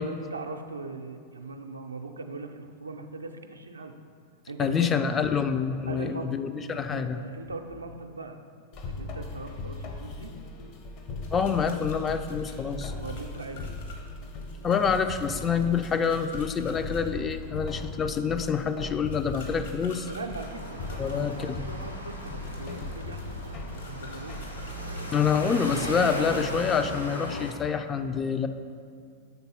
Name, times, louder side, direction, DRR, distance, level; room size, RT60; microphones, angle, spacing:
voice 1, 0.1-3.9 4.5-4.8 5.9-6.4 6.9-8.4 8.9-10.3 13.0-13.7 20.1-24.4, right 3 dB, 75° right, 6 dB, 0.4 m, -40 dB
voice 2, 4.6-7.2 11.3-12.9 14.6-20.1 21.0-21.6 25.1-28.5, left 6 dB, 20° left, 8 dB, 0.3 m, -27 dB
sound 1, 8.7-24.7, left 2 dB, 40° left, 0.7 m, -39 dB
sound 2, 11.2-17.0 19.1-21.3 22.1-26.4, left 3 dB, 65° left, 1.3 m, -50 dB
sound 3, 20.3-27.5, left 1 dB, 85° left, 0.7 m, -37 dB
6.9 x 4.0 x 5.5 m, 2.2 s
figure-of-eight pair, 90°, 0 cm